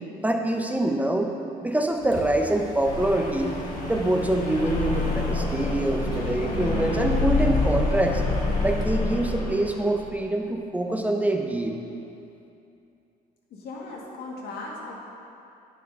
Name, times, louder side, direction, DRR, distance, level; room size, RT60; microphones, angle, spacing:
voice 1, 0.2-1.3 1.6-3.6 3.9-8.2 8.6-11.8, right 1 dB, 10° right, 2 dB, 0.8 m, -25 dB
Mechanisms, 1.8-9.0, left 1 dB, 25° left, 1.7 m, -44 dB
sound 1, 2.8-10.1, left 2 dB, 40° left, 2.3 m, -27 dB
voice 2, 13.5-14.9, left 3 dB, 70° left, -2 dB, 1.8 m, -37 dB
10.5 x 5.2 x 5.4 m, 2.6 s
cardioid pair, 110°, 17 cm